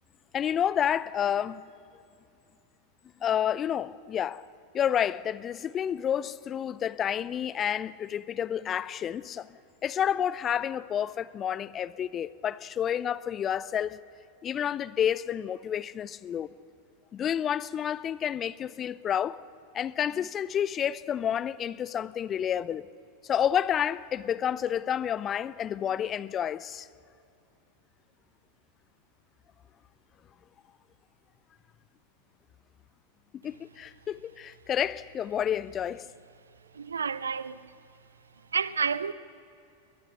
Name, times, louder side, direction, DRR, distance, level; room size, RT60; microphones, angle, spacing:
voice 1, 0.3-1.6 3.2-4.5 4.7-9.5 9.8-14.0 14.4-16.5 17.1-19.4 19.7-22.9 23.2-26.9 33.4-36.1, left 9 dB, 25° left, 0.5 m, -29 dB
voice 2, 36.7-37.7 38.5-39.1, right 6 dB, 70° right, 0.6 m, -30 dB
21.5 x 21.0 x 6.7 m
figure-of-eight pair, 90°, 0 cm